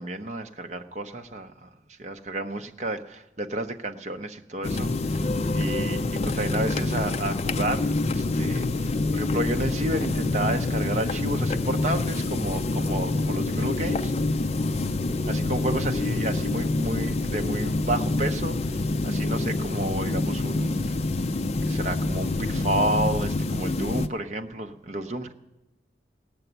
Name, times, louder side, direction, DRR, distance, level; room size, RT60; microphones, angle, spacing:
voice 1, 0.0-1.7 2.0-5.3 5.5-14.1 15.2-21.0 21.7-25.3, right 1 dB, 40° right, 6 dB, 0.8 m, -31 dB
sound 1, 4.6-24.1, left 2 dB, 35° left, 0.4 m, -26 dB
17.0 x 6.9 x 9.3 m, 1.0 s
head